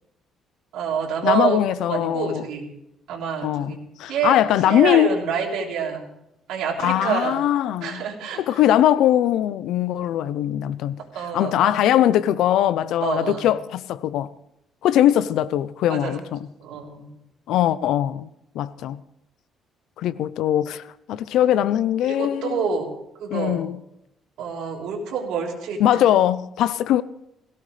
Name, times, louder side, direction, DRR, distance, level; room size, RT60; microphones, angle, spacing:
voice 1, 0.7-2.7 3.1-3.8 4.1-4.4 4.7-6.1 6.5-7.4 7.8-8.6 11.1-11.7 13.0-13.5 15.9-16.2 16.6-17.1 22.0-22.9 23.2-23.6 24.4-25.8, right 7 dB, 90° right, 3.5 m, -27 dB
voice 2, 1.2-2.4 3.4-5.2 6.8-8.0 8.4-11.0 11.3-14.3 14.8-16.4 17.5-18.3 18.5-19.0 20.0-20.8 21.1-22.7 23.3-23.8 25.8-27.0, left 12 dB, 80° left, 0.6 m, -21 dB
18.0 x 16.5 x 3.3 m
cardioid pair, 140°, 0 cm